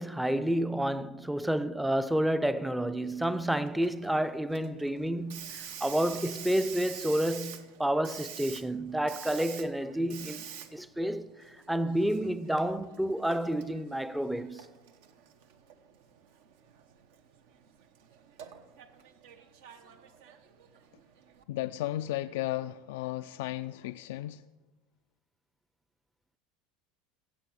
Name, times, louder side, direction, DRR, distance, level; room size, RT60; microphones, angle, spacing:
voice 1, 0.0-10.4 10.7-11.3 11.7-14.6, right 1 dB, 5° right, 0.5 m, -30 dB
Hiss, 3.0-21.4, right 8 dB, 80° right, 1.1 m, -48 dB
voice 2, 21.5-24.4, left 15 dB, 80° left, 0.3 m, -34 dB
16.0 x 7.7 x 6.4 m
supercardioid pair, 110°, 0 cm